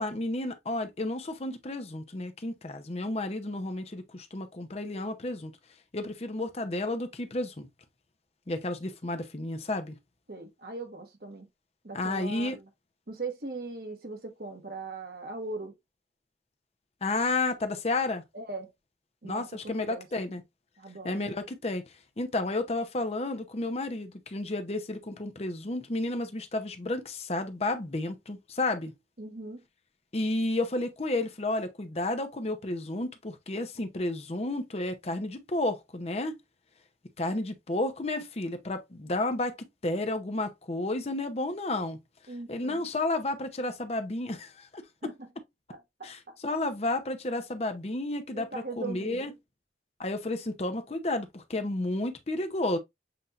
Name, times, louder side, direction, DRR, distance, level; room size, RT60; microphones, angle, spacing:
voice 1, 0.0-5.5 5.9-7.7 8.5-10.0 11.9-12.6 17.0-18.2 19.2-20.4 21.0-21.8 22.2-28.9 30.1-36.4 37.2-42.0 42.5-45.1 46.0-49.3 50.0-52.8, left 2 dB, 35° left, 0.7 m, -32 dB
voice 2, 10.3-11.5 11.8-12.7 13.1-15.7 18.3-18.7 19.2-19.5 19.8-20.1 20.8-21.2 29.2-29.6 42.3-42.9 45.0-45.3 45.7-46.4 48.3-49.2, right 3 dB, 60° right, 1.4 m, -40 dB
7.6 x 2.7 x 2.5 m
head